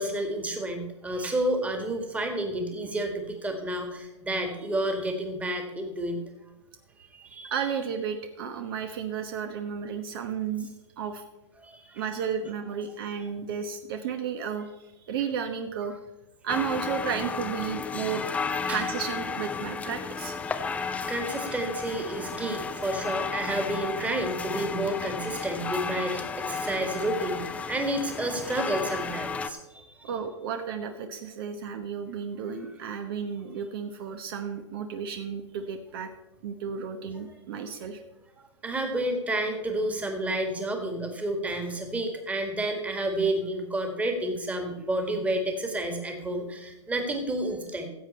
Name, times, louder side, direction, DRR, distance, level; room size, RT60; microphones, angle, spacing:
voice 1, 0.0-6.2 7.1-7.5 11.6-12.0 18.7-18.8 21.1-30.1 38.6-47.9, right 1 dB, 10° right, 4 dB, 1.8 m, -30 dB
voice 2, 7.5-10.7 11.0-11.2 11.9-15.9 16.4-18.2 18.7-20.4 30.0-36.1 36.4-38.0, right 7 dB, 50° right, 7 dB, 1.0 m, -33 dB
sound 1, 16.5-29.5, left 5 dB, 10° left, 0.5 m, -33 dB
15.5 x 7.6 x 4.3 m, 1.0 s
hypercardioid pair, 130°, 16 cm